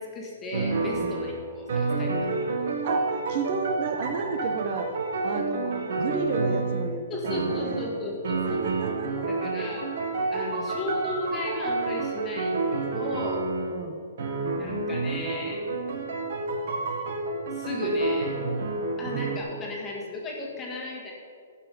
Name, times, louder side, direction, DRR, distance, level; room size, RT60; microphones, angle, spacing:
voice 1, 0.0-2.5 7.1-8.6 9.3-9.9 10.3-13.5 14.6-15.7 17.5-18.4 19.0-21.1, left 2 dB, 15° left, -2 dB, 1.7 m, -35 dB
sound 1, 0.5-7.0 7.3-8.0 8.2-13.8 14.2-19.4, right 3 dB, 55° right, 1.5 m, -29 dB
voice 2, 2.8-4.9 5.2-8.0 8.4-9.5 13.7-14.0, right 4 dB, 35° right, 5 dB, 0.7 m, -32 dB
15.0 x 5.8 x 5.3 m, 2.3 s
hypercardioid pair, 170°, 0 cm